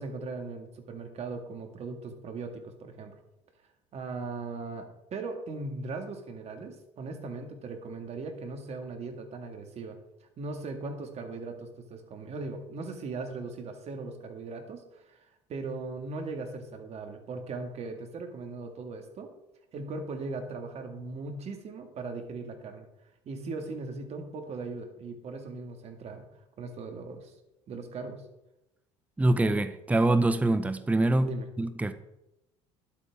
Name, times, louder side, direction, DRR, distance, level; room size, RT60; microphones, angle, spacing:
voice 1, 0.0-3.1 3.9-10.0 10.4-19.3 19.7-22.9 23.3-26.3 26.6-27.3 27.7-28.2 31.2-31.5, right 3 dB, 50° right, 5 dB, 1.9 m, -39 dB
voice 2, 29.2-31.3 31.6-31.9, right 2 dB, 10° right, 11 dB, 0.7 m, -24 dB
11.5 x 8.5 x 3.6 m, 0.90 s
supercardioid pair, 80°, 14 cm